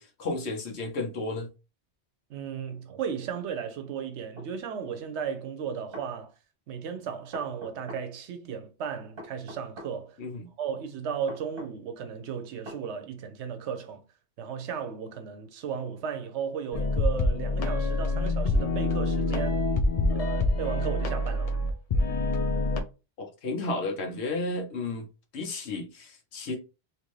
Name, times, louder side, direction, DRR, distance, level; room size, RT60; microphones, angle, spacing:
voice 1, 0.0-1.5 10.2-10.5 23.2-25.1 25.3-26.6, left 2 dB, 75° left, 1.1 m, -33 dB
voice 2, 2.3-6.3 6.7-10.2 10.6-14.0 14.4-19.7 20.1-21.5, right 7 dB, 80° right, 0.9 m, -35 dB
sound 1, 4.4-4.5 5.7-6.1 7.3-8.1 9.2-9.9 11.3-11.7 12.7-12.8, equal, 60° right, 1.2 m, -43 dB
sound 2, 16.7-22.8, left 2 dB, 55° left, 0.4 m, -26 dB
2.9 x 2.6 x 3.1 m
omnidirectional pair, 1.2 m